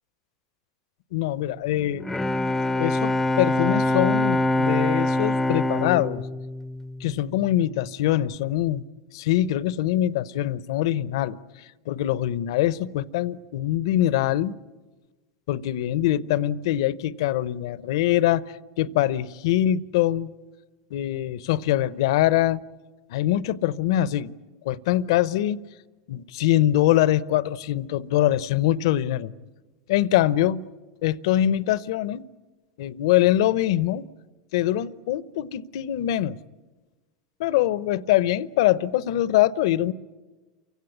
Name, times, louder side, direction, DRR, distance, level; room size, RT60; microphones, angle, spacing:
voice 1, 1.1-2.0 2.7-6.2 7.0-8.8 9.1-11.4 11.9-14.6 15.5-18.4 18.8-20.3 20.9-22.6 23.1-24.3 24.6-25.6 26.1-29.3 29.9-30.7 31.0-32.2 32.8-34.1 34.5-36.4 37.4-39.9, left 13 dB, 70° left, 0.7 m, -23 dB
Bowed string instrument, 1.8-7.6, left 1 dB, 10° left, 0.7 m, -24 dB
28.5 x 16.5 x 9.7 m
hypercardioid pair, 105°, 3 cm